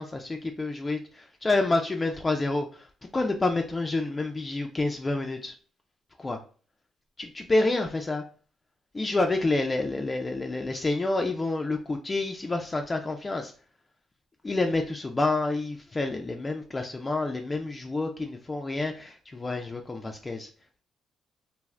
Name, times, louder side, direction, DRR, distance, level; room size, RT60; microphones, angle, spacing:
voice 1, 0.0-2.9 3.1-5.5 6.2-6.4 7.2-8.2 8.9-13.5 14.4-20.5, left 2 dB, 25° left, 3 dB, 0.3 m, -28 dB
2.6 x 2.4 x 3.2 m, 0.40 s
cardioid pair, 90°, 0 cm